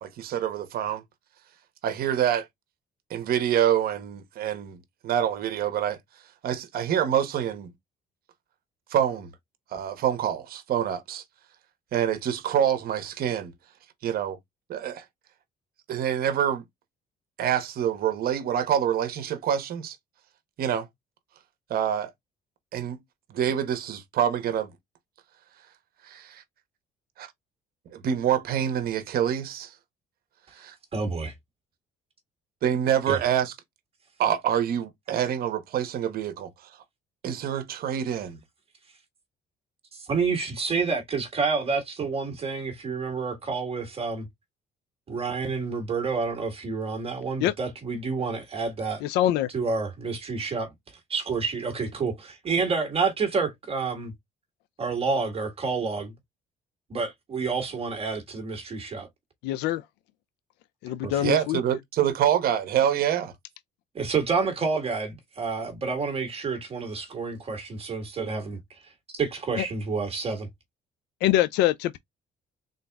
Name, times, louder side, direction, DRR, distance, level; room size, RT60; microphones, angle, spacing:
voice 1, 0.0-1.0 1.8-2.5 3.1-4.8 5.0-6.0 6.4-7.7 8.9-9.3 9.7-11.2 11.9-13.5 14.0-14.4 14.7-15.0 15.9-16.6 17.4-20.0 20.6-20.9 21.7-22.1 22.7-23.0 23.3-24.7 26.0-26.4 27.2-27.3 27.9-29.7 30.6-30.7 32.6-33.5 34.2-36.5 37.2-38.4 61.2-63.3, right 9 dB, 65° right, 1.1 m, -26 dB
voice 2, 30.9-31.3 33.1-33.2 39.9-44.3 45.1-49.0 49.5-50.7 51.1-54.1 54.8-56.1 56.9-59.1 61.0-61.3 63.9-68.6 69.1-70.5, right 4 dB, 35° right, 1.6 m, -29 dB
voice 3, 49.0-49.5 59.4-59.8 60.8-61.6 69.6-69.7 71.2-72.0, left 13 dB, 90° left, 0.4 m, -24 dB
3.9 x 3.9 x 2.3 m
cardioid pair, 110°, 17 cm